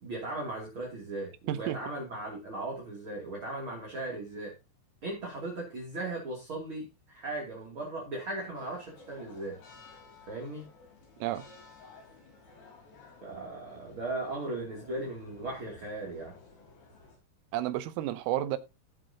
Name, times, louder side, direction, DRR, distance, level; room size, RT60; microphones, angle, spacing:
voice 1, 0.0-4.5 5.0-9.6 10.3-10.7 13.2-16.3, right 2 dB, 30° right, 2.7 m, -37 dB
voice 2, 1.5-1.8 11.2-11.5 17.5-18.6, right 13 dB, 85° right, 3.6 m, -31 dB
sound 1, 8.5-17.2, left 3 dB, 55° left, 6.2 m, -55 dB
16.5 x 7.7 x 2.9 m
omnidirectional pair, 5.9 m